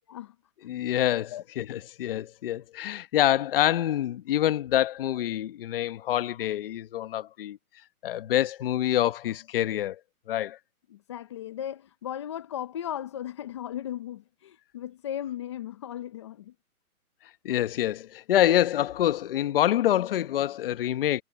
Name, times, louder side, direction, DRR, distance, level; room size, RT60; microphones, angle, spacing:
voice 1, 0.6-7.6 8.0-10.0 10.3-10.6 17.4-21.2, left 12 dB, 40° left, 1.1 m, -26 dB
voice 2, 10.9-16.5, left 11 dB, 20° left, 0.6 m, -36 dB
hypercardioid pair, 160°, 44 cm